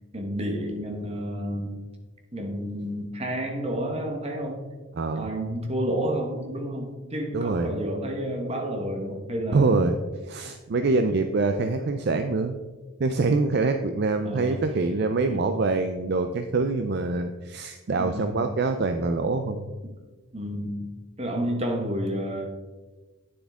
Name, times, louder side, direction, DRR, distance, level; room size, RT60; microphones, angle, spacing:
voice 1, 0.1-1.7 2.3-4.7 5.1-10.0 14.2-14.6 15.3-15.4 18.0-18.4 20.3-20.8 21.2-22.4, equal, 30° right, 2 dB, 1.3 m, -30 dB
voice 2, 5.0-5.3 7.3-7.7 9.5-9.9 10.3-12.6 13.0-19.7, right 3 dB, 50° right, 7 dB, 0.4 m, -25 dB
9.5 x 7.0 x 3.6 m, 1.3 s
head